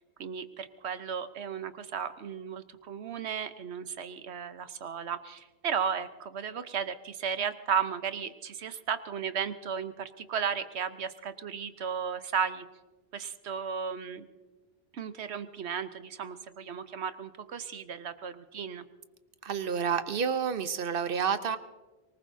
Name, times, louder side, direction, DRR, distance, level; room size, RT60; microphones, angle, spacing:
voice 1, 0.2-12.7 13.1-14.3 14.9-18.9, right 7 dB, 85° right, 11 dB, 1.2 m, -34 dB
voice 2, 19.4-21.6, right 6 dB, 60° right, 11 dB, 0.9 m, -29 dB
24.0 x 19.5 x 2.7 m, 1.2 s
omnidirectional pair, 1.1 m